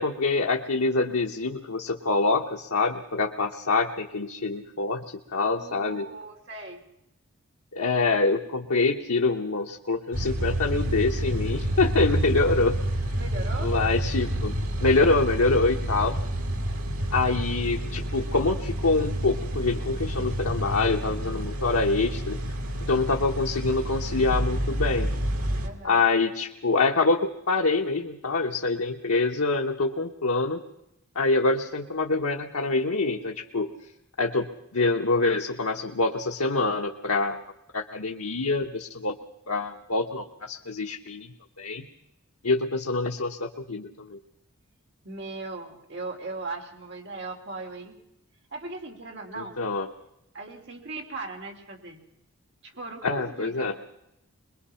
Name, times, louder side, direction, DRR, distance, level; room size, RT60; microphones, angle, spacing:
voice 1, 0.0-6.1 7.7-12.8 13.6-14.5 14.8-16.2 17.1-22.4 22.9-25.1 25.8-30.6 31.1-33.7 34.2-37.4 37.7-39.1 39.5-41.9 42.4-44.2 49.4-49.9 53.0-53.7, left 3 dB, 85° left, 2 dB, 1.1 m, -25 dB
voice 2, 5.4-6.9 12.1-12.2 13.2-13.7 25.6-26.0 45.0-48.0 48.5-49.6 50.3-52.0 52.6-53.7, right 3 dB, 50° right, 1 dB, 3.1 m, -38 dB
sound 1, 10.1-25.7, right 1 dB, 80° right, 2.3 m, -29 dB
23.5 x 21.5 x 5.7 m, 0.85 s
head